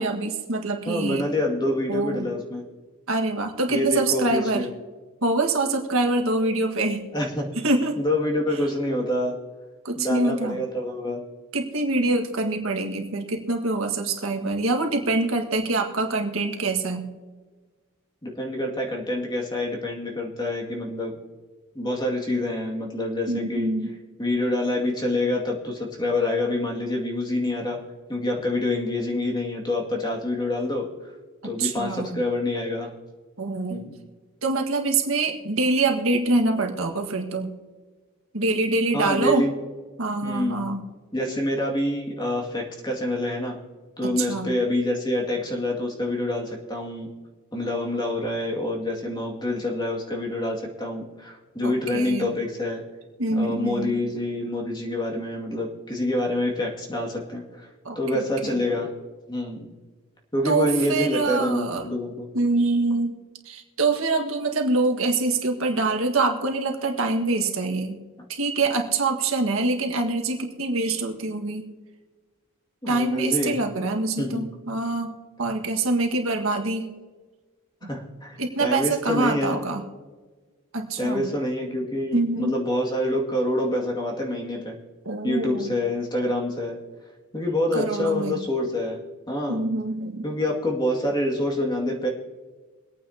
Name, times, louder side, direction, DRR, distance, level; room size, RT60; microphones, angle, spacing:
voice 1, 0.0-1.2 1.9-2.3 3.1-4.7 5.2-7.0 7.6-8.0 9.8-10.6 11.5-17.1 23.3-23.9 31.4-32.2 33.4-33.8 34.4-37.5 38.3-39.4 40.0-40.8 44.2-44.6 51.6-52.3 53.2-54.0 57.8-58.6 60.4-61.8 62.3-63.2 63.4-68.0 68.3-71.7 72.9-75.1 75.4-76.9 77.8-77.9 78.4-79.8 80.7-81.2 82.1-82.5 85.0-85.7 87.7-88.3 89.5-90.3, right 3 dB, 75° right, 3 dB, 1.7 m, -25 dB
voice 2, 0.9-2.6 3.7-4.7 7.1-7.5 8.0-9.4 10.0-11.2 18.2-21.1 21.7-23.7 24.2-27.8 28.1-30.9 31.4-32.9 33.7-33.9 38.9-39.5 40.2-40.6 41.1-43.6 44.0-47.1 47.5-52.8 53.3-57.7 58.0-58.9 59.3-59.7 60.3-62.3 72.8-73.6 74.2-74.4 77.8-79.6 81.0-84.7 85.2-86.8 87.3-89.0 89.3-89.7 90.2-92.1, left 1 dB, 20° left, 0 dB, 2.2 m, -26 dB
24.0 x 9.1 x 2.8 m, 1.3 s
head